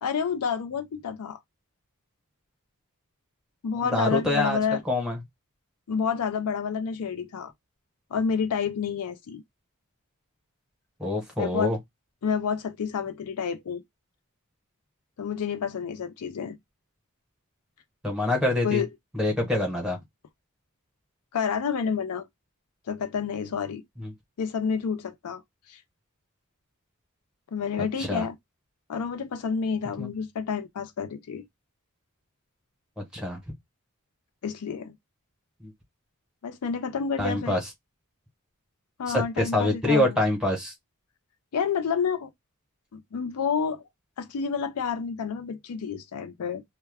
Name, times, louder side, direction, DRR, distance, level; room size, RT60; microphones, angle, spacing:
voice 1, 0.0-1.4 3.6-4.8 5.9-7.5 8.1-9.4 11.4-11.7 12.2-13.8 15.2-16.6 18.6-18.9 21.3-22.3 22.9-23.8 24.4-25.4 25.7-25.8 27.5-28.4 28.9-31.4 34.4-34.9 36.4-37.6 39.0-40.2 41.5-42.3 42.9-43.8 44.2-46.6, left 6 dB, 80° left, 0.4 m, -29 dB
voice 2, 3.9-4.6 4.9-5.2 11.0-11.8 18.0-18.8 19.1-20.0 24.0-24.1 28.0-28.2 30.0-30.1 33.1-33.4 37.2-37.6 39.1-40.7, left 1 dB, 5° right, 0.9 m, -25 dB
2.2 x 2.1 x 3.3 m
head